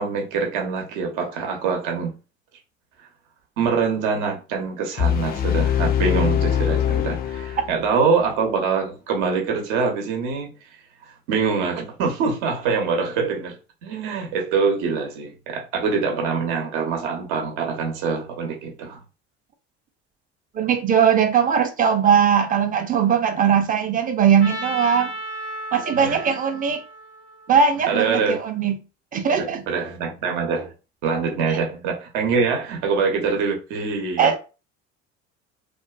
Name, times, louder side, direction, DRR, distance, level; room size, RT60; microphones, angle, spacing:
voice 1, 0.0-2.1 3.6-10.5 11.3-19.0 26.0-26.3 27.9-28.4 29.3-30.7 31.0-34.4, right 5 dB, 65° right, 0.8 m, -24 dB
sound 1, 5.0-8.0, left 10 dB, 30° left, 0.3 m, -22 dB
voice 2, 20.5-25.1 25.7-26.8 27.5-28.8 29.1-29.6 31.5-31.6 34.2-34.4, right 7 dB, 25° right, 0.5 m, -19 dB
Trumpet, 24.4-28.4, right 1 dB, 80° left, 0.8 m, -35 dB
2.5 x 2.3 x 2.3 m
hypercardioid pair, 70°, 33 cm